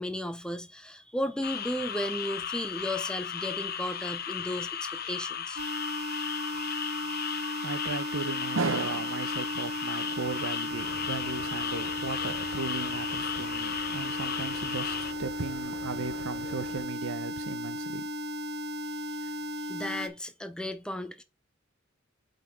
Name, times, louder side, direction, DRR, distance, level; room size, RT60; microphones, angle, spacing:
voice 1, 0.0-5.6 19.2-19.3 19.7-21.2, left 1 dB, 5° left, 0.6 m, -34 dB
sound 1, 1.4-15.1, left 8 dB, 45° left, 0.6 m, -35 dB
sound 2, 5.6-20.1, left 1 dB, 50° right, 1.1 m, -36 dB
voice 2, 7.6-18.1, right 4 dB, 70° right, 0.8 m, -36 dB
sound 3, 10.7-16.9, left 3 dB, 85° left, 1.7 m, -46 dB
8.2 x 3.9 x 4.7 m
head